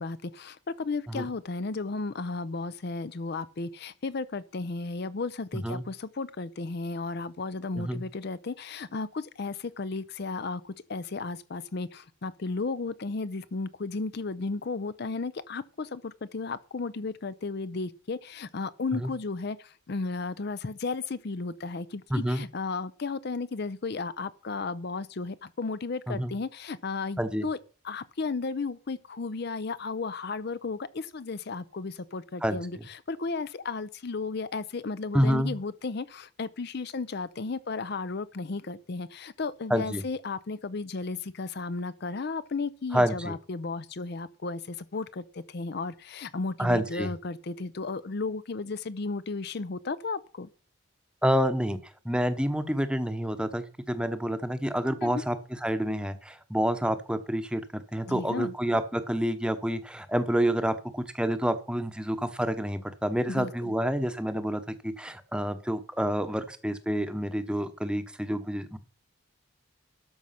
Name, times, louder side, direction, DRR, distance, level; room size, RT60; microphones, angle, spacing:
voice 1, 0.0-27.6 27.8-50.5 55.0-55.2 58.1-58.5 63.3-63.8, left 3 dB, 50° left, 0.5 m, -34 dB
voice 2, 5.5-5.8 7.7-8.0 18.9-19.1 22.1-22.4 26.1-26.3 27.2-27.5 32.4-32.8 35.1-35.5 39.7-40.0 42.9-43.4 46.6-47.1 51.2-51.8 52.0-68.8, equal, 5° right, 0.9 m, -28 dB
12.5 x 6.2 x 5.8 m
head